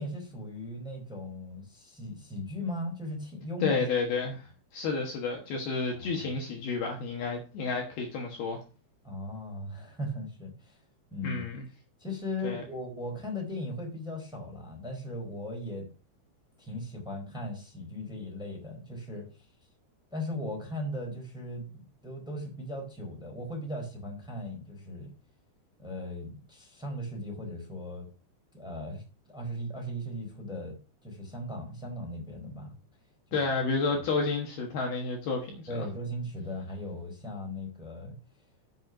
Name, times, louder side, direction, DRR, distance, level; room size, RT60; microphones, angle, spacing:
voice 1, 0.0-3.8 6.0-6.2 9.0-10.8 11.1-11.4 12.0-15.8 16.6-19.5 20.1-25.1 25.8-28.1 28.5-30.7 31.0-32.7 33.9-34.1 35.7-38.1, left 1 dB, ahead, 1 dB, 3.3 m, -38 dB
voice 2, 3.6-4.5 4.7-8.6 11.2-11.6 12.4-12.6 33.3-35.8, left 4 dB, 65° left, 1 dB, 2.9 m, -31 dB
8.7 x 7.2 x 6.0 m, 0.36 s
omnidirectional pair, 5.5 m